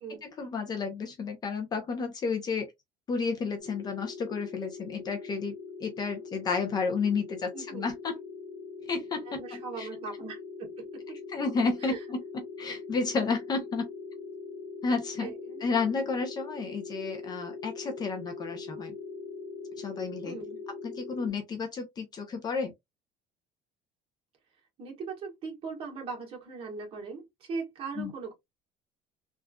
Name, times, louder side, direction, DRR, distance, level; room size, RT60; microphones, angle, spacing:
voice 1, 0.2-2.7 3.1-5.5 5.8-8.2 8.9-9.9 11.3-13.9 14.8-15.3 15.6-18.9 19.8-20.4 20.8-22.7 28.0-28.1, left 4 dB, 30° left, 0.6 m, -31 dB
sound 1, 3.6-21.3, left 4 dB, 80° left, 1.4 m, -42 dB
voice 2, 7.5-7.9 9.4-11.0 11.8-12.0 15.2-15.6 20.2-20.6 24.8-28.3, right 4 dB, 40° right, 1.4 m, -39 dB
3.4 x 2.5 x 2.2 m
cardioid pair, 160°, 15 cm